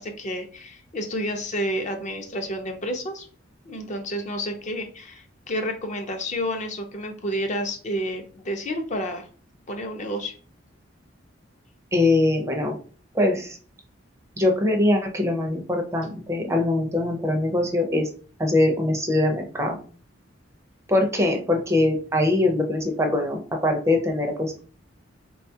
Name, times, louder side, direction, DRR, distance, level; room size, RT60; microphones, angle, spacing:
voice 1, 0.0-3.3 3.7-9.3 9.7-10.3, equal, 40° left, 5 dB, 0.5 m, -30 dB
voice 2, 11.9-12.8 13.1-13.6 14.4-18.1 18.4-19.8 20.9-24.6, left 2 dB, 15° right, 2 dB, 0.5 m, -22 dB
3.8 x 2.3 x 2.7 m, 0.39 s
head